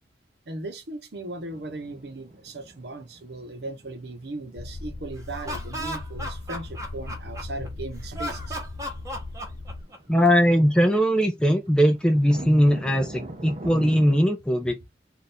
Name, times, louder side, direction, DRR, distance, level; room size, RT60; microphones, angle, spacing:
voice 1, 0.5-8.6, right 2 dB, 70° right, 0.9 m, -37 dB
sound 1, 1.5-14.3, right 1 dB, 35° right, 0.6 m, -44 dB
sound 2, 4.6-9.8, left 2 dB, 65° left, 0.6 m, -38 dB
Laughter, 5.2-7.7 8.1-10.2, equal, 20° right, 1.0 m, -35 dB
voice 2, 10.1-14.8, equal, 5° left, 0.4 m, -20 dB
3.5 x 2.5 x 4.2 m
head